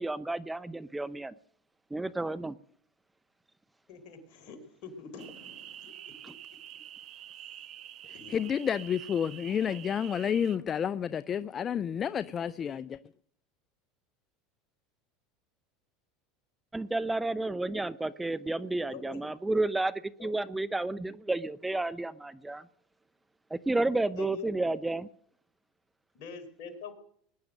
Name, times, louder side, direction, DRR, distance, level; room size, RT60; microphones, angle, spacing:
voice 1, 0.0-1.3 1.9-2.6 6.2-6.3 16.7-19.9 20.2-22.6 23.5-25.1, right 2 dB, 10° right, 0.7 m, -31 dB
voice 2, 3.9-6.3 8.1-8.4 18.9-19.2 20.2-20.3 24.2-24.7 26.2-26.9, left 5 dB, 60° left, 4.2 m, -45 dB
sound 1, 5.2-10.6, right 11 dB, 50° right, 1.1 m, -47 dB
voice 3, 8.3-13.0, left 8 dB, 35° left, 0.6 m, -30 dB
20.5 x 10.5 x 6.5 m
hypercardioid pair, 90°, 0 cm